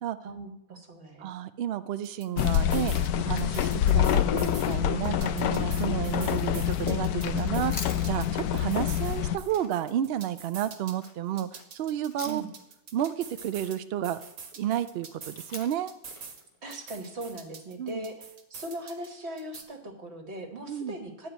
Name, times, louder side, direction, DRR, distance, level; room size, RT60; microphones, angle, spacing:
voice 1, 0.2-1.3 8.6-8.7 12.2-12.5 16.6-21.3, right 1 dB, 45° right, 4 dB, 1.5 m, -40 dB
voice 2, 1.2-12.4 12.9-14.2 14.6-15.9 17.8-18.0 20.7-20.9, right 11 dB, 85° right, 11 dB, 0.5 m, -31 dB
sound 1, 2.0-3.1 3.4-4.7 5.0-8.4 8.7-11.1 11.4-13.8 14.0-16.4 16.7-19.1 19.4-19.6, right 5 dB, 65° right, 1.5 m, -45 dB
sound 2, 2.4-9.4, left 10 dB, 80° left, 1.1 m, -26 dB
Chewing mastication, 7.4-12.7 13.0-17.4, left 3 dB, 30° left, 0.7 m, -46 dB
11.0 x 4.8 x 8.0 m, 0.83 s
omnidirectional pair, 1.6 m